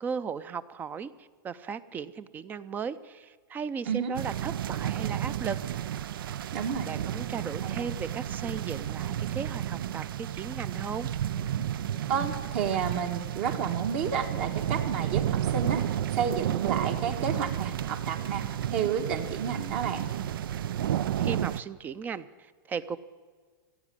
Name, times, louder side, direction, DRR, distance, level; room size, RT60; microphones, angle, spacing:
voice 1, 0.0-5.6 6.9-11.1 21.2-23.0, right 6 dB, 15° right, 16 dB, 0.4 m, -36 dB
sound 1, 4.2-21.6, right 11 dB, 85° right, 0.4 m, -32 dB
voice 2, 6.5-6.9 7.6-7.9 12.1-15.8 16.1-18.4 18.7-20.1, right 7 dB, 50° right, 4 dB, 1.3 m, -31 dB
16.0 x 8.4 x 9.8 m, 1.5 s
supercardioid pair, 150°, 11 cm